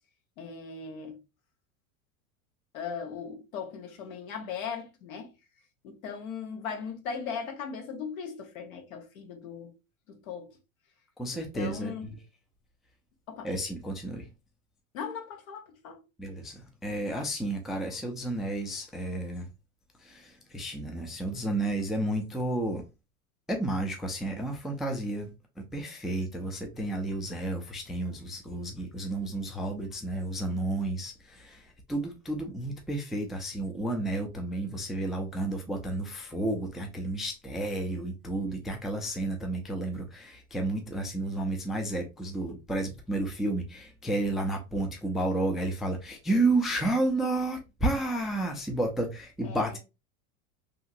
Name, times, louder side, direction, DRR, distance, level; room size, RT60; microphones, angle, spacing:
voice 1, 0.4-1.2 2.7-5.3 5.8-9.7 10.1-10.6 11.3-12.1 13.3-13.5 14.9-16.0 49.4-49.8, left 6 dB, 80° left, 1.0 m, -38 dB
voice 2, 11.2-11.9 13.4-14.3 16.2-19.5 20.0-22.8 23.5-25.3 25.6-49.8, right 2 dB, ahead, 0.3 m, -31 dB
2.8 x 2.7 x 2.5 m
hypercardioid pair, 95°, 41 cm